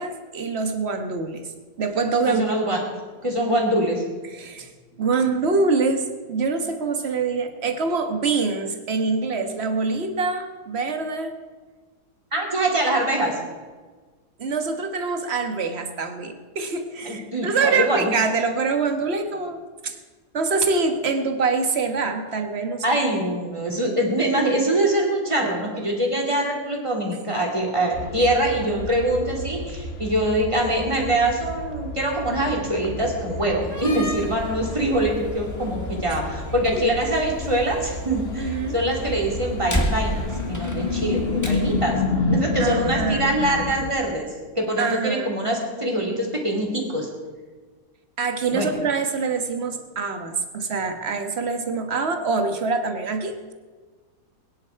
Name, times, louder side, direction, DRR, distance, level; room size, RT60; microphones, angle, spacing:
voice 1, 0.0-1.5 1.8-2.4 4.3-4.7 5.0-11.3 14.4-20.0 20.3-23.0 36.7-36.8 38.4-38.8 42.6-43.4 44.8-45.3 48.2-53.5, right 4 dB, 45° right, 6 dB, 1.5 m, -25 dB
voice 2, 2.3-2.8 3.2-4.0 12.3-13.4 17.0-18.2 22.8-42.0 42.3-44.3 44.5-47.1 48.5-48.8, right 1 dB, 20° right, -1 dB, 2.9 m, -24 dB
sound 1, 27.9-43.9, left 3 dB, 45° left, 1.3 m, -30 dB
Slam, 33.6-42.0, equal, 10° left, 1.6 m, -33 dB
21.0 x 10.5 x 4.7 m, 1.4 s
omnidirectional pair, 1.6 m